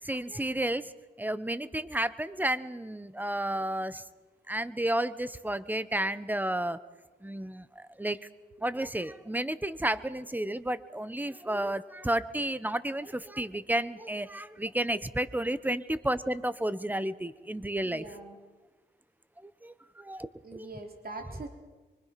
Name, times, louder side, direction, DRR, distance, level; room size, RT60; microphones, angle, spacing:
voice 1, 0.0-0.9 1.2-4.0 4.5-6.8 7.2-8.2 8.6-18.0 19.4-20.7, right 1 dB, 10° right, 15 dB, 1.2 m, -32 dB
voice 2, 17.8-18.4 20.4-21.5, right 2 dB, 55° right, 4 dB, 3.6 m, -43 dB
24.5 x 24.5 x 6.0 m, 1.3 s
cardioid pair, 60°, 18 cm